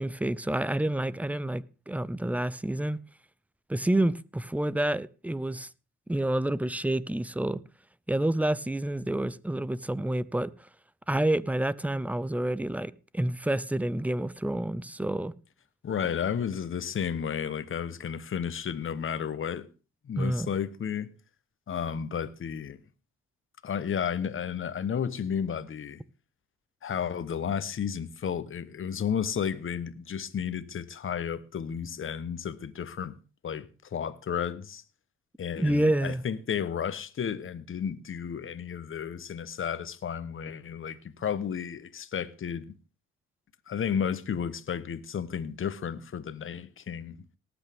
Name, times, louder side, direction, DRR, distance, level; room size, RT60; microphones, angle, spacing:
voice 1, 0.0-3.0 3.7-5.7 6.1-7.6 8.1-10.5 11.1-15.3 20.2-20.5 35.6-36.2, right 1 dB, 5° right, 0.5 m, -28 dB
voice 2, 15.8-19.7 20.0-21.1 21.7-22.8 23.6-26.0 26.8-33.1 33.4-34.8 35.4-42.7 43.7-47.2, left 7 dB, 45° left, 1.0 m, -32 dB
18.5 x 8.2 x 3.6 m
cardioid pair, 90°, 30 cm